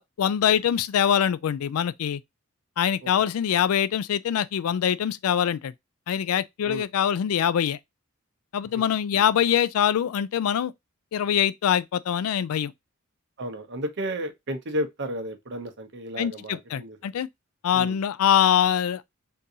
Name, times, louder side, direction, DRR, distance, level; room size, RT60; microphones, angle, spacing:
voice 1, 0.0-2.2 2.8-5.7 6.1-7.8 8.5-10.7 11.1-12.7 16.2-17.3 17.6-19.0, left 9 dB, 85° left, 0.3 m, -24 dB
voice 2, 13.4-17.0 17.7-18.0, equal, 55° right, 0.7 m, -33 dB
3.7 x 2.6 x 2.7 m
head